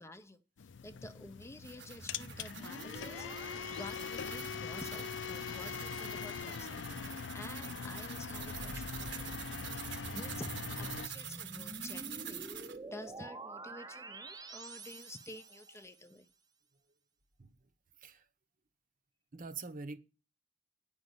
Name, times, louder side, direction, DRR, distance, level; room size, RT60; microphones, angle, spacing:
voice 1, 0.0-9.4 9.7-12.5 12.9-16.3, left 1 dB, 15° left, 0.6 m, -50 dB
sound 1, 0.6-11.1, left 6 dB, 85° left, 0.5 m, -42 dB
sound 2, 1.4-12.8, right 9 dB, 65° right, 1.2 m, -47 dB
sound 3, 1.8-4.9 8.2-15.9, right 2 dB, 20° right, 0.7 m, -49 dB
voice 2, 19.3-20.0, right 4 dB, 50° right, 0.9 m, -43 dB
9.4 x 5.3 x 8.0 m
head